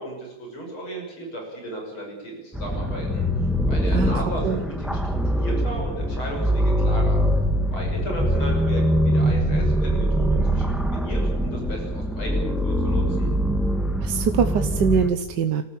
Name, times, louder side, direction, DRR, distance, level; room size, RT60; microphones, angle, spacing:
voice 1, 0.0-3.3 3.7-7.2 7.7-13.3, right 1 dB, 85° left, 1 dB, 7.2 m, -35 dB
sound 1, 2.5-15.1, equal, ahead, 1.4 m, -23 dB
voice 2, 3.9-4.6 14.0-15.6, right 6 dB, 60° right, 8 dB, 1.5 m, -23 dB
29.5 x 14.0 x 8.8 m, 1.0 s
omnidirectional pair, 2.3 m